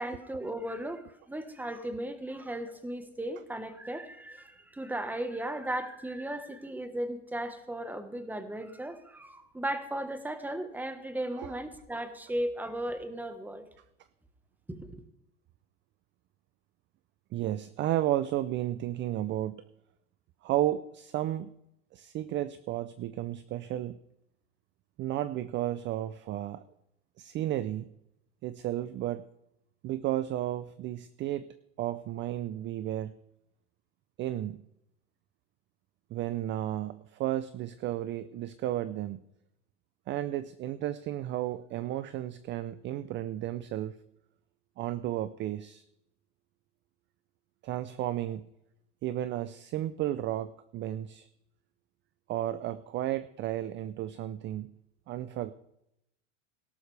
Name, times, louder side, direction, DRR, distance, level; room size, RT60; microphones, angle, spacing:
voice 1, 0.0-13.6 14.7-15.0, right 1 dB, 5° right, 9 dB, 1.2 m, -36 dB
voice 2, 17.3-19.6 20.4-21.5 21.9-24.0 25.0-26.6 27.2-27.9 28.4-29.2 29.8-31.5 31.8-33.1 34.2-34.6 36.1-39.2 40.1-43.9 44.8-45.8 47.6-48.5 49.0-51.3 52.3-54.7 55.1-55.5, right 13 dB, 30° right, 15 dB, 0.5 m, -33 dB
18.0 x 11.5 x 3.3 m, 0.81 s
supercardioid pair, 135°, 38 cm